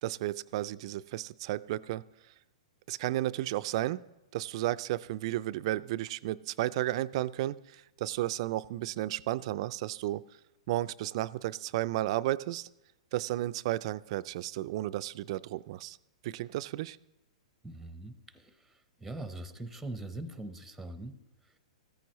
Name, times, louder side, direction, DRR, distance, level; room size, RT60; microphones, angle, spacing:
voice 1, 0.0-2.1 2.9-4.0 4.3-10.2 10.7-12.7 13.1-16.0 16.2-17.0, right 15 dB, 50° right, 0.3 m, -33 dB
voice 2, 17.6-21.2 21.4-21.6, right 2 dB, 5° right, 0.8 m, -42 dB
14.5 x 13.5 x 3.1 m
hypercardioid pair, 120°, 4 cm